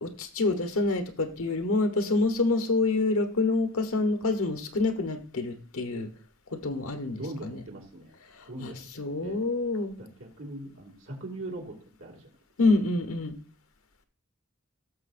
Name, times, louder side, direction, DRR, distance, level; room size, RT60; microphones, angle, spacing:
voice 1, 0.0-6.1 6.5-7.6 8.6-10.0 12.6-13.4, left 3 dB, 90° left, 8 dB, 1.1 m, -27 dB
voice 2, 7.2-8.1 8.5-8.8 9.2-9.4 10.0-11.7 12.0-12.2, right 1 dB, 70° right, -2 dB, 2.3 m, -40 dB
17.0 x 6.6 x 2.5 m, 0.40 s
head